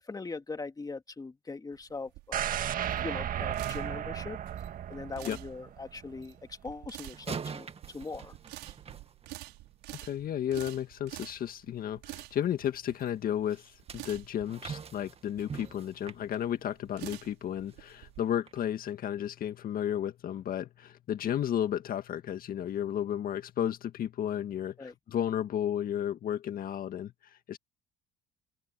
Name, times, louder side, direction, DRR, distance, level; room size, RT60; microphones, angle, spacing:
voice 1, 0.0-2.7 3.0-4.4 4.9-8.4 24.8-24.9, left 3 dB, 20° left, 2.5 m, -41 dB
sound 1, 1.7-18.2, right 19 dB, 75° right, 6.2 m, -48 dB
sound 2, 2.3-6.3 6.7-6.8, right 10 dB, 50° right, 1.8 m, -34 dB
sound 3, 7.1-9.7 13.5-17.3 17.7-17.9 18.5-18.6, right 6 dB, 35° right, 2.1 m, -44 dB
voice 2, 10.0-27.6, left 10 dB, 55° left, 1.7 m, -33 dB
supercardioid pair, 85°, 18 cm